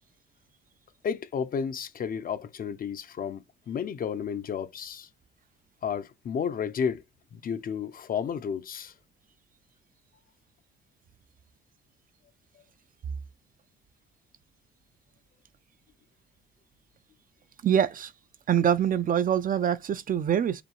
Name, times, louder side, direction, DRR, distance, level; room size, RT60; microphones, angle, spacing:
voice 1, 1.0-5.1 5.8-7.0 7.3-8.9, left 7 dB, 45° left, 0.5 m, -32 dB
voice 2, 17.6-18.1 18.5-20.6, right 9 dB, 45° right, 0.4 m, -24 dB
5.0 x 2.6 x 3.0 m
cardioid pair, 90°, 20 cm